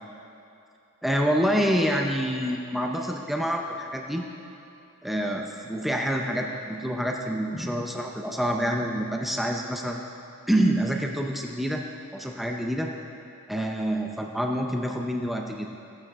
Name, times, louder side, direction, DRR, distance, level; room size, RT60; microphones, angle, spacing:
voice 1, 1.0-4.2 5.0-10.0 10.5-11.8 12.1-12.9 13.5-15.7, equal, ahead, 1 dB, 0.5 m, -27 dB
15.0 x 8.7 x 3.6 m, 2.8 s
head